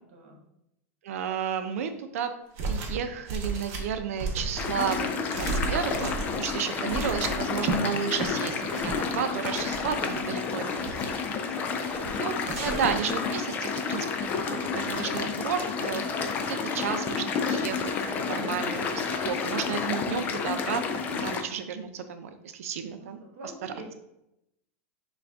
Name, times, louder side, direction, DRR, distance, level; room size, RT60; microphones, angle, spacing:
voice 1, 1.0-2.3 2.6-5.1 5.4-10.6 12.1-12.3 12.6-14.1 14.4-16.0 16.5-17.9 18.2-23.2, right 7 dB, 85° right, 8 dB, 0.5 m, -32 dB
sound 1, 2.6-3.0 3.3-7.8 8.1-8.3 8.7-9.1 9.5-10.3 10.6-11.2 11.8-12.2 12.4-13.1, right 4 dB, 40° right, 0.9 m, -34 dB
sound 2, 4.5-21.4, left 5 dB, 20° left, 0.4 m, -30 dB
voice 2, 10.1-11.1 23.0-23.9, right 1 dB, 65° right, 1 dB, 1.3 m, -46 dB
5.9 x 2.4 x 3.5 m, 0.85 s
supercardioid pair, 170°, 8 cm